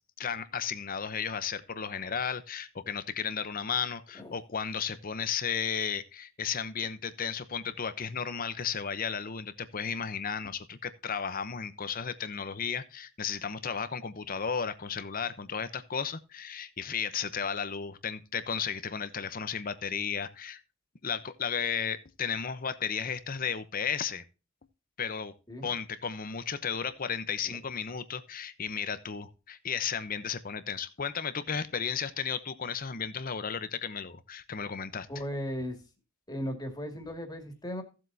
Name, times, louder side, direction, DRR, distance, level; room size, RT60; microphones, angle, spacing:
voice 1, 0.2-20.6 21.0-24.2 25.0-25.3 25.6-35.1, left 7 dB, 45° left, 0.8 m, -34 dB
voice 2, 35.1-35.8 36.3-37.8, equal, 20° left, 2.3 m, -36 dB
15.5 x 7.7 x 2.7 m
head